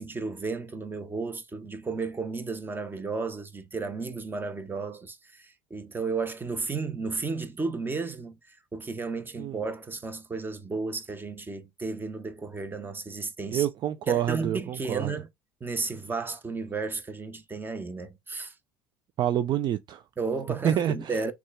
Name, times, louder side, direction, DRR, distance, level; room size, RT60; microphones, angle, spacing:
voice 1, 0.0-13.7 14.1-15.3 15.6-18.5 20.2-21.3, right 4 dB, 20° right, 1.0 m, -33 dB
voice 2, 13.5-15.1 19.2-20.0 20.6-21.3, right 11 dB, 40° right, 0.4 m, -27 dB
6.2 x 2.4 x 3.4 m
hypercardioid pair, 70°, 11 cm